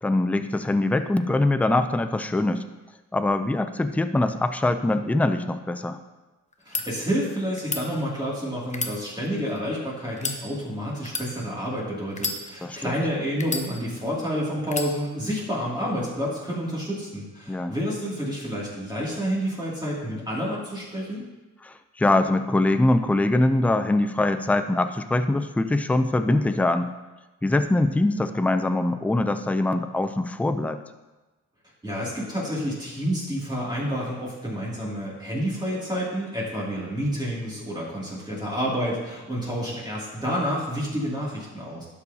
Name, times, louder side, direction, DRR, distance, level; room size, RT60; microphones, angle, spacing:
voice 1, 0.0-2.6 3.1-6.0 12.6-13.0 17.5-17.8 21.6-26.9 27.4-30.8, left 2 dB, 5° left, 9 dB, 0.4 m, -23 dB
sound 1, 6.5-6.9 7.6-7.8 8.7-9.6 10.1-10.4 11.0-11.3 12.1-12.8 13.4-14.1 14.7-14.9, left 3 dB, 25° left, 0.8 m, -31 dB
voice 2, 6.6-21.2 31.8-41.9, equal, 15° right, -6 dB, 2.6 m, -29 dB
12.0 x 6.9 x 2.8 m, 1.1 s
cardioid pair, 95°, 31 cm